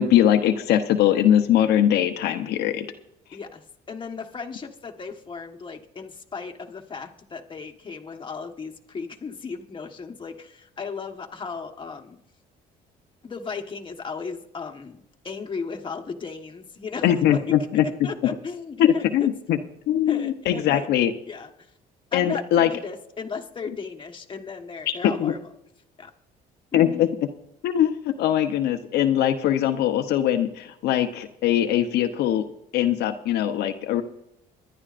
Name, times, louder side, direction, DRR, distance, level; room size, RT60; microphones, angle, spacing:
voice 1, 0.0-2.9 17.0-17.8 18.8-19.6 19.9-21.1 22.1-22.7 24.9-25.3 26.7-27.1 27.6-32.5 32.7-34.0, left 11 dB, 75° left, 5 dB, 0.8 m, -21 dB
voice 2, 3.3-12.2 13.2-17.6 18.0-19.3 20.1-20.9 21.3-21.5 22.1-25.4 26.0-26.1 26.7-27.1, left 5 dB, 30° left, 3 dB, 1.4 m, -36 dB
24.0 x 11.0 x 2.5 m, 0.81 s
cardioid pair, 110°, 17 cm